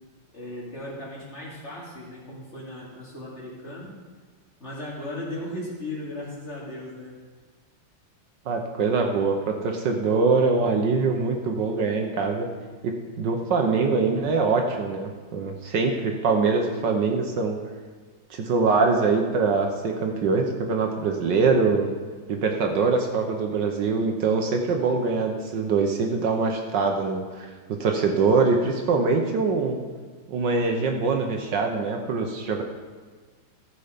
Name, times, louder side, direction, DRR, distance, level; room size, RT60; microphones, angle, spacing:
voice 1, 0.3-3.9 4.6-7.1, left 1 dB, 35° left, -5 dB, 2.7 m, -36 dB
voice 2, 8.5-12.5 12.8-17.6 18.3-21.9 22.3-27.5 27.8-29.8 30.3-32.6, right 4 dB, 65° right, 3 dB, 1.5 m, -23 dB
14.5 x 7.0 x 5.1 m, 1.5 s
omnidirectional pair, 2.2 m